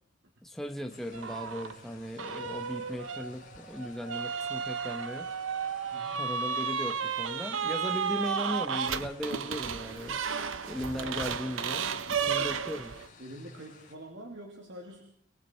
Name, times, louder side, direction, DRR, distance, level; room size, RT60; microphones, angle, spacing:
voice 1, 0.4-5.3 6.1-10.2 10.7-12.9, equal, ahead, 4 dB, 1.2 m, -37 dB
sound 1, 0.9-13.9, left 4 dB, 45° left, 5.1 m, -55 dB
sound 2, 1.1-1.7 2.2-13.1, right 6 dB, 85° right, 1.0 m, -33 dB
sound 3, 1.4-9.4, equal, 30° right, 5.2 m, -60 dB
voice 2, 5.9-6.2 11.0-11.1 12.1-12.5 13.2-15.0, right 1 dB, 65° right, 1 dB, 2.9 m, -46 dB
30.0 x 20.0 x 4.6 m, 0.65 s
head